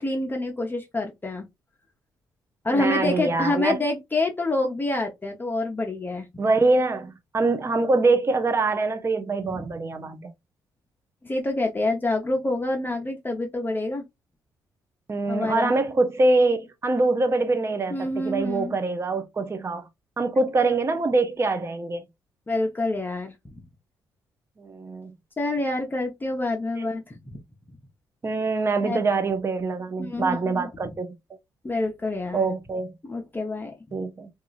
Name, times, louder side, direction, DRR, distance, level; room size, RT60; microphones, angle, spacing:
voice 1, 0.0-1.5 2.6-6.3 9.5-9.6 11.2-14.0 15.3-15.7 17.9-18.7 22.5-23.6 25.4-27.4 28.8-29.0 30.0-30.9 31.6-32.5 33.1-33.7, left 2 dB, 20° left, 0.7 m, -27 dB
voice 2, 2.7-3.8 6.4-10.3 15.1-19.8 20.2-22.0 24.6-25.1 26.8-26.9 28.2-31.1 32.3-32.9 33.9-34.3, right 3 dB, 30° right, 0.5 m, -24 dB
2.8 x 2.4 x 2.4 m
supercardioid pair, 55°, 9 cm